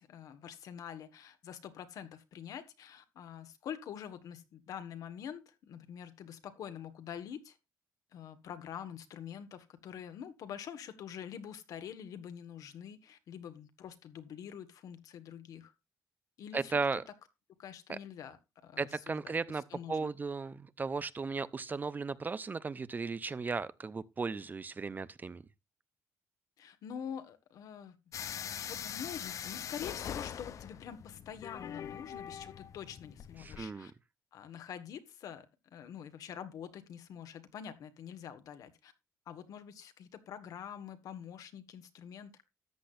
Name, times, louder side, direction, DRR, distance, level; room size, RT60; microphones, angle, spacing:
voice 1, 0.0-7.6 8.1-15.7 16.4-16.8 17.6-18.4 18.6-20.1 26.6-28.0 28.6-33.9 34.3-35.5 35.7-38.9 39.2-42.4, left 8 dB, 75° left, 1.7 m, -46 dB
voice 2, 16.5-17.0 17.9-18.0 18.8-25.4 33.4-33.9, right 4 dB, 30° right, 0.6 m, -36 dB
sound 1, 28.1-33.7, left 9 dB, 55° left, 0.6 m, -42 dB
13.5 x 8.5 x 2.6 m
cardioid pair, 90°, 6 cm